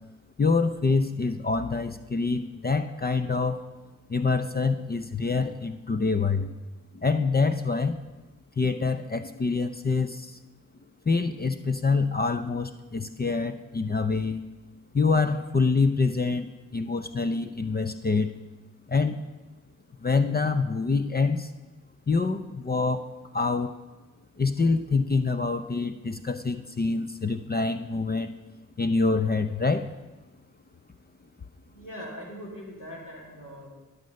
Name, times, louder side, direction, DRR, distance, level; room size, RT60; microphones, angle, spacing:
voice 1, 0.4-3.6 4.1-6.5 6.9-8.0 8.6-10.4 11.1-14.4 14.9-18.3 18.9-19.2 20.0-21.5 22.1-23.1 23.3-23.7 24.4-28.3 28.8-29.9, left 4 dB, 25° left, 10 dB, 0.6 m, -26 dB
voice 2, 31.7-33.7, equal, 60° left, -3 dB, 3.7 m, -41 dB
11.5 x 6.5 x 5.3 m, 1.1 s
supercardioid pair, 40°, 36 cm